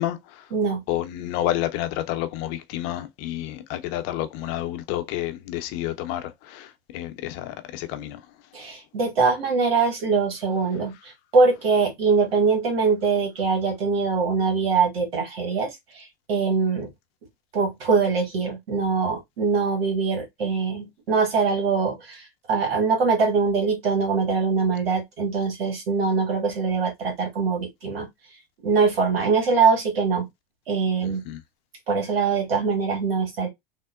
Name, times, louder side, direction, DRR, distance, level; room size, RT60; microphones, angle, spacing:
voice 1, 0.0-0.5 0.9-8.2 31.3-31.4, left 13 dB, 55° left, 0.6 m, -30 dB
voice 2, 0.5-0.8 8.5-16.9 17.5-28.1 28.6-30.3 30.7-31.2 31.9-33.5, right 4 dB, 85° right, 1.2 m, -23 dB
3.5 x 2.1 x 2.3 m
hypercardioid pair, 85°, 29 cm